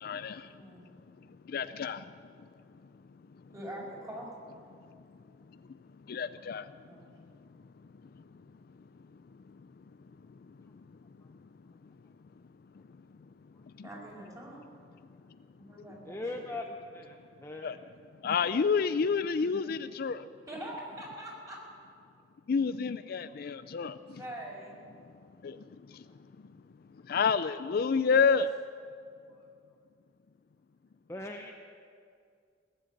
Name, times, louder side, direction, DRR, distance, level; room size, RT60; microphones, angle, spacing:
voice 1, 0.0-0.4 1.5-2.0 6.1-6.6 13.8-13.9 17.6-17.8 18.2-20.2 22.5-23.9 25.4-25.6 27.1-28.5, left 5 dB, 55° left, 13 dB, 0.4 m, -28 dB
voice 2, 3.5-4.3 6.8-7.1 13.8-14.6 15.7-16.4 20.5-21.6 24.1-24.9, right 1 dB, 20° right, -4 dB, 4.9 m, -43 dB
voice 3, 16.0-17.7 29.3-29.5 31.1-31.6, left 2 dB, 15° left, 2 dB, 0.7 m, -40 dB
18.5 x 7.9 x 9.8 m, 2.3 s
head